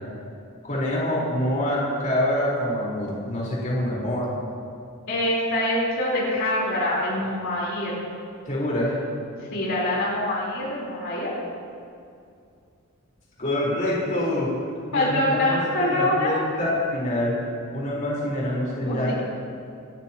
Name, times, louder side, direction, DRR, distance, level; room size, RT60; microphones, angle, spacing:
voice 1, 0.6-4.3 8.5-9.0 13.4-14.5 14.9-17.4 17.7-19.2, left 1 dB, 35° left, -6 dB, 4.2 m, -26 dB
voice 2, 5.1-7.9 9.4-11.3 14.9-16.4 18.7-19.2, left 1 dB, 60° left, -5 dB, 4.0 m, -25 dB
27.5 x 13.5 x 3.0 m, 2.4 s
head